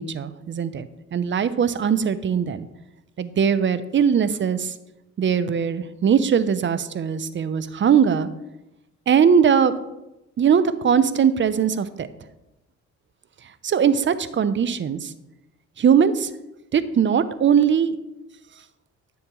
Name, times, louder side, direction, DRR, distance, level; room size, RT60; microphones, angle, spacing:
voice 1, 0.0-2.7 3.2-4.7 5.2-8.3 9.1-9.7 10.4-12.1 13.6-15.1 15.8-16.3 16.7-18.0, right 7 dB, 40° right, 13 dB, 0.6 m, -20 dB
11.0 x 7.1 x 3.1 m, 0.94 s
cardioid pair, 90°, 30 cm